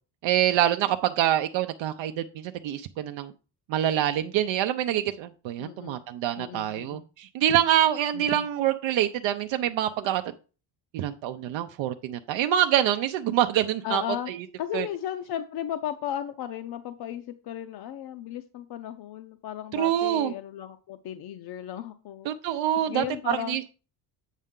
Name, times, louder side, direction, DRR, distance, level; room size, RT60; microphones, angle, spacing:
voice 1, 0.2-3.3 3.7-10.2 10.9-14.0 14.3-14.4 14.7-14.9 19.7-20.3 22.2-23.6, right 11 dB, 75° right, 7 dB, 0.6 m, -26 dB
voice 2, 5.6-6.0 6.4-7.0 8.1-8.5 13.8-14.3 14.6-22.3 22.9-23.7, left 11 dB, 55° left, 8 dB, 0.6 m, -35 dB
8.2 x 5.4 x 3.7 m, 0.35 s
cardioid pair, 155°, 45 cm